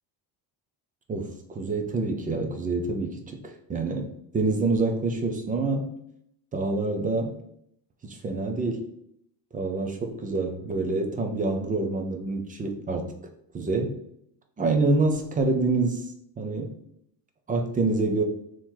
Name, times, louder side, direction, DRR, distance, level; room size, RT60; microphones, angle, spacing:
voice 1, 1.1-5.9 6.5-7.4 8.0-8.8 9.5-13.1 13.5-13.9 14.6-16.7 17.5-18.2, right 3 dB, 20° right, 4 dB, 0.4 m, -27 dB
3.7 x 3.0 x 4.3 m, 0.72 s
cardioid pair, 165°, 41 cm